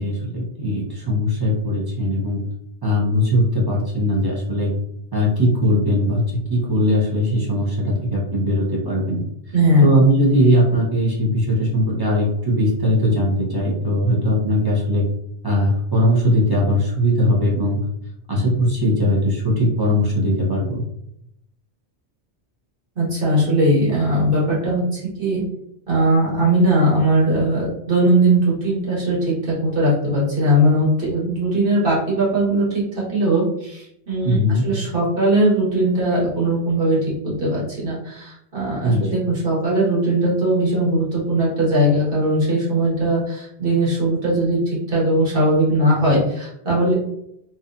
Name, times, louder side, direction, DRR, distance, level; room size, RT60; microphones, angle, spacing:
voice 1, 0.0-2.4 2.8-4.7 5.1-6.2 6.5-9.2 9.8-15.0 15.4-17.8 18.3-20.8 34.2-34.6 38.8-39.0, equal, 35° right, -3 dB, 0.4 m, -19 dB
voice 2, 9.5-9.9 23.0-25.4 25.9-32.6 33.1-37.0 37.2-44.6 44.9-46.9, right 1 dB, 50° right, -6 dB, 1.3 m, -19 dB
2.7 x 2.2 x 2.5 m, 0.77 s
omnidirectional pair, 1.2 m